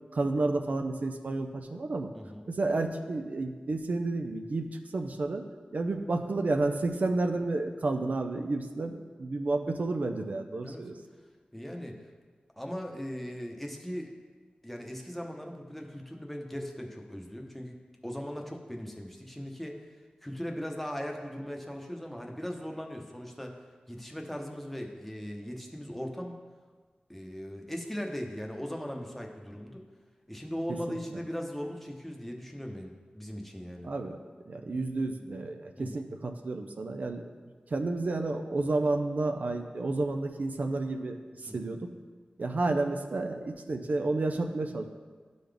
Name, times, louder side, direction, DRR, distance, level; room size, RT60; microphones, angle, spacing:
voice 1, 0.1-2.1 2.5-4.7 4.9-5.4 5.7-10.9 30.9-31.0 33.8-34.2 34.5-37.3 37.7-41.9 42.4-44.9, right 2 dB, 65° right, 5 dB, 0.5 m, -31 dB
voice 2, 2.1-2.5 10.6-10.8 11.5-12.0 12.6-14.1 14.6-17.8 18.0-19.8 20.2-23.5 23.9-26.4 27.1-29.8 30.3-33.9 35.8-36.1 41.5-41.8, equal, 5° left, 1 dB, 0.9 m, -39 dB
11.5 x 3.9 x 3.4 m, 1.5 s
wide cardioid pair, 60°, 3 cm